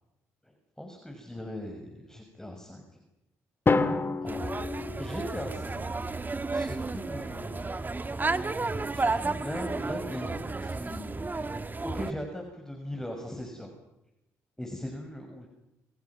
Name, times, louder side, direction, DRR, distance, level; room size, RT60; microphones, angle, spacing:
voice 1, 0.4-3.0 4.2-4.4 5.0-5.9 6.5-7.9 8.9-13.7 14.6-15.5, left 1 dB, 10° left, 3 dB, 6.2 m, -39 dB
Drum, 3.7-5.7, left 3 dB, 35° left, 2.4 m, -28 dB
sound 1, 4.3-12.1, right 3 dB, 25° right, 1.7 m, -32 dB
28.0 x 27.0 x 6.1 m, 0.88 s
hypercardioid pair, 50°, 7 cm